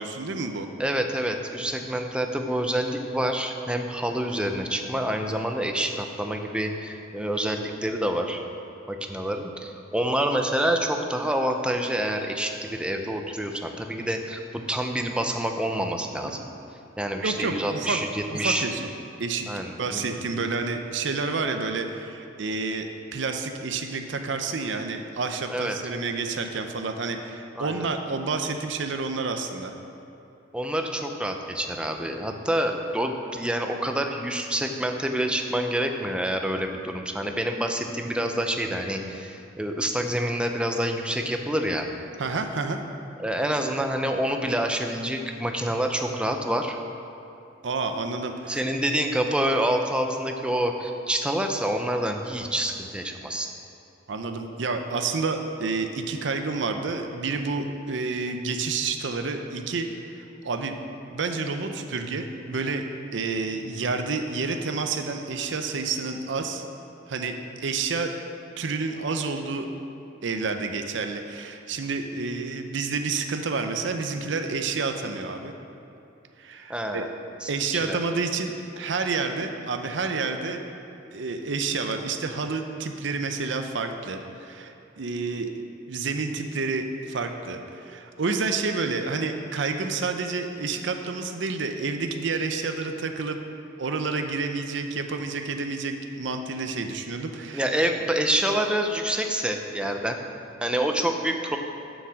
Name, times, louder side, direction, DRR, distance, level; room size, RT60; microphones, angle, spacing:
voice 1, 0.0-0.7 17.2-18.0 18.3-18.9 19.2-29.7 42.2-42.8 47.6-48.7 54.1-60.8 61.1-62.8 63.1-66.6 67.1-68.1 68.6-69.7 70.2-75.5 76.4-77.1 77.5-80.6 81.1-93.4 93.8-97.7, right 4 dB, 65° right, 6 dB, 0.6 m, -29 dB
voice 2, 0.8-8.4 8.9-16.4 17.0-18.7 19.5-20.1 25.5-25.8 27.6-27.9 30.5-41.9 43.2-46.8 48.5-53.5 76.7-77.1 77.4-78.0 97.5-100.2 100.6-101.6, right 1 dB, 5° right, 4 dB, 0.5 m, -27 dB
7.3 x 7.1 x 6.2 m, 2.8 s
head